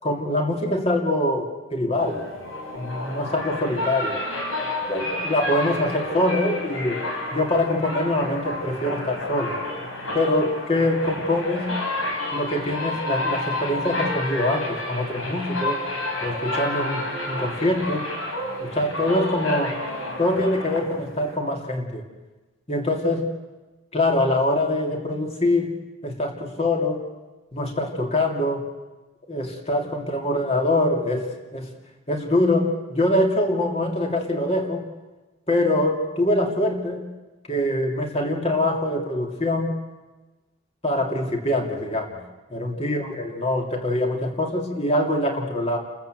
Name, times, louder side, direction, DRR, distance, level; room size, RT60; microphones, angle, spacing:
voice 1, 0.0-2.2 2.8-4.2 4.9-7.0 7.3-9.6 10.1-11.7 12.3-15.8 16.2-18.1 18.6-19.8 20.2-22.0 22.7-23.3 23.9-25.7 26.0-27.1 27.5-28.7 29.3-31.7 32.1-34.8 35.5-37.0 37.5-39.8 40.8-42.2 42.5-45.8, left 1 dB, 30° left, 2 dB, 2.8 m, -24 dB
sound 1, 2.0-21.4, left 2 dB, 75° left, 5.3 m, -30 dB
30.0 x 14.0 x 7.8 m, 1.2 s
head